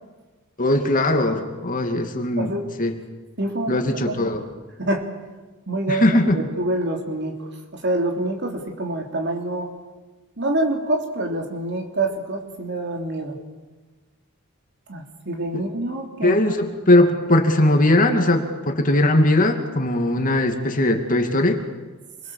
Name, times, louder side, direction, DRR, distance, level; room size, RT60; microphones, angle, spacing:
voice 1, 0.6-3.0 3.7-4.4 5.9-6.4 15.5-15.6 16.2-21.6, left 1 dB, 40° left, 5 dB, 2.5 m, -19 dB
voice 2, 3.4-4.1 4.8-5.1 5.7-6.0 6.3-7.4 7.7-9.7 10.4-13.4 14.9-16.5, right 1 dB, 50° right, 3 dB, 3.6 m, -26 dB
28.5 x 23.0 x 7.4 m, 1.2 s
head